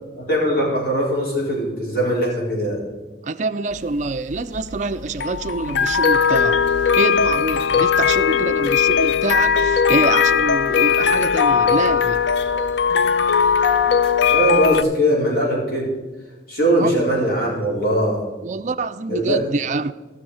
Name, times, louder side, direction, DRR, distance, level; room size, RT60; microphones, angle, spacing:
voice 1, 0.1-2.8 14.3-15.9 16.5-18.2 19.1-19.4, equal, 55° left, 4.1 m, -20 dB
voice 2, 3.2-6.6 7.0-12.2 16.8-17.0 18.4-19.9, right 3 dB, 40° right, 0.4 m, -25 dB
sound 1, 3.8-14.8, left 6 dB, 80° left, 0.5 m, -18 dB
15.5 x 6.4 x 4.9 m
head